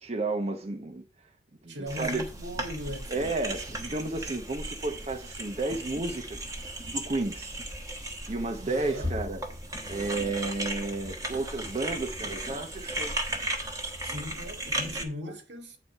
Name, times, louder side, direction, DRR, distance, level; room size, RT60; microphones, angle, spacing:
voice 1, 0.0-1.0 1.6-2.2 3.1-7.5 8.3-9.4 9.9-13.2 15.3-15.4, right 3 dB, 35° right, 0.7 m, -32 dB
voice 2, 1.7-3.3 8.7-9.1 14.0-15.8, left 1 dB, 80° right, 1.7 m, -38 dB
sound 1, 1.9-15.0, right 1 dB, 20° right, 1.1 m, -36 dB
8.7 x 4.2 x 5.4 m
head